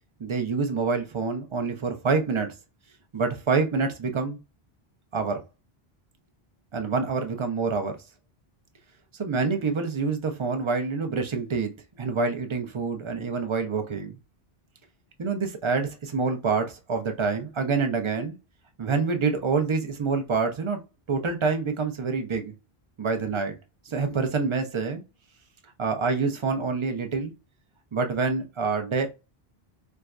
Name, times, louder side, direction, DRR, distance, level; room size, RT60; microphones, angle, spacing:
voice 1, 0.2-2.5 3.1-4.4 5.1-5.4 6.7-8.0 9.2-11.7 12.0-14.2 15.2-18.3 18.8-20.8 21.1-22.5 23.0-23.6 23.9-25.0 25.8-27.3 27.9-29.1, right 4 dB, 35° right, 0.5 m, -26 dB
4.4 x 2.1 x 2.4 m
omnidirectional pair, 1.0 m